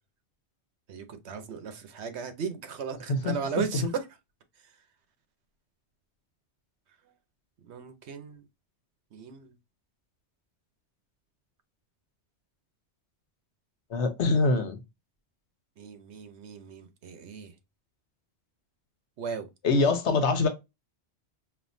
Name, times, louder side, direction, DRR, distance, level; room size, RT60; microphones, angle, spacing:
voice 1, 0.9-4.0 7.6-8.5 9.1-9.5 15.8-17.5 19.2-19.5, right 6 dB, 80° right, 1.1 m, -36 dB
voice 2, 13.9-14.8 19.6-20.5, left 3 dB, 85° left, 1.2 m, -24 dB
5.4 x 2.7 x 2.6 m
omnidirectional pair, 1.1 m